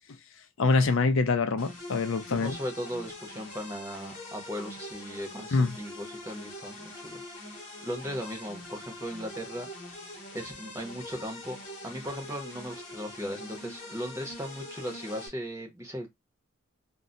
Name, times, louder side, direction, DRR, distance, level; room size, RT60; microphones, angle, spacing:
voice 1, 0.6-2.6 5.5-5.7, left 4 dB, 60° left, 0.4 m, -25 dB
sound 1, 1.6-15.3, left 1 dB, 35° left, 0.7 m, -44 dB
voice 2, 2.3-7.2 7.8-9.7 10.3-11.6 11.8-16.1, equal, 15° right, 0.6 m, -37 dB
2.2 x 2.0 x 3.8 m
head